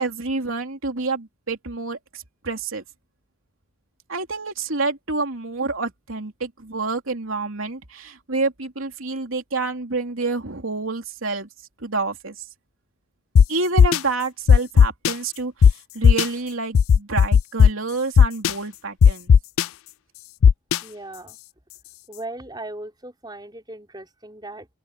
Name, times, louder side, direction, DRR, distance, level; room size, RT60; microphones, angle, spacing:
voice 1, 0.0-2.8 4.1-11.5 11.8-12.4 13.5-19.3, right 3 dB, 80° right, 3.1 m, -28 dB
sound 1, 13.4-13.5 13.8-14.0 14.5-15.1 15.6-15.7 16.0-16.2 16.7-17.7 18.2-18.5 19.0-19.6 20.4-20.8, left 7 dB, 85° left, 0.4 m, -12 dB
voice 2, 20.8-21.4 22.1-24.7, right 2 dB, 20° right, 5.6 m, -37 dB
open air
head